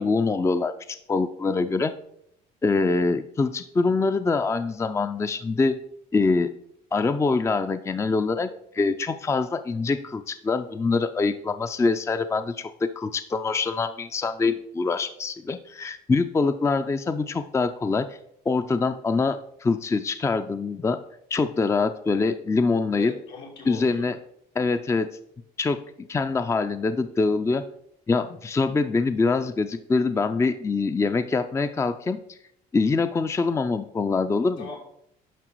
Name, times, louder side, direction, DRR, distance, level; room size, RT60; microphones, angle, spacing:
voice 1, 0.0-1.9 2.6-5.8 6.1-6.5 6.9-18.2 18.5-21.0 21.3-23.1 23.7-24.2 24.6-25.1 25.6-27.6 28.1-32.4 32.7-34.7, left 4 dB, 15° left, 10 dB, 0.4 m, -24 dB
voice 2, 23.0-24.0 34.6-34.8, left 4 dB, 80° left, 0 dB, 2.8 m, -39 dB
10.0 x 5.7 x 4.6 m, 0.73 s
cardioid pair, 110°, 17 cm